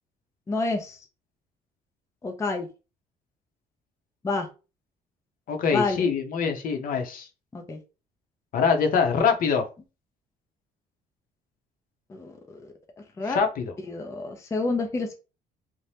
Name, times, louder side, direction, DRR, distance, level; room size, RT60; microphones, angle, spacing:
voice 1, 0.5-1.1 2.2-2.7 4.2-4.5 5.7-6.1 7.5-7.8 12.1-12.7 13.2-13.4 13.9-15.1, left 3 dB, 15° left, 0.4 m, -29 dB
voice 2, 5.5-7.3 8.5-9.7 13.3-13.6, left 6 dB, 55° left, 0.7 m, -24 dB
2.7 x 2.1 x 3.2 m
cardioid pair, 110°, 17 cm